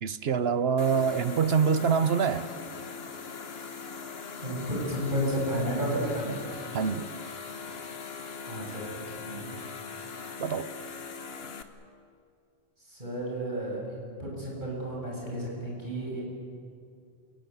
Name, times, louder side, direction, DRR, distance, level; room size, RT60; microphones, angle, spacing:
voice 1, 0.0-2.5 6.7-7.1 10.4-10.7, right 6 dB, 65° right, 13 dB, 1.1 m, -25 dB
sound 1, 0.8-11.6, left 5 dB, 65° left, 1.5 m, -41 dB
voice 2, 4.4-6.4 8.4-9.5 12.9-16.2, equal, 45° right, -3 dB, 7.9 m, -32 dB
28.0 x 17.5 x 9.3 m, 2.4 s
omnidirectional pair, 1.1 m